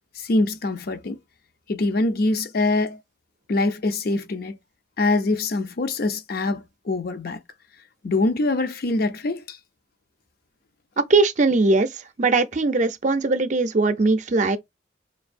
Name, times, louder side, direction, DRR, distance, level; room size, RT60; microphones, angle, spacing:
voice 1, 0.2-1.2 1.7-3.0 3.5-4.6 5.0-7.4 8.0-9.6, left 2 dB, 55° left, 0.6 m, -24 dB
voice 2, 11.1-11.9 12.2-14.6, right 3 dB, 40° right, 0.5 m, -20 dB
4.5 x 2.6 x 2.5 m
head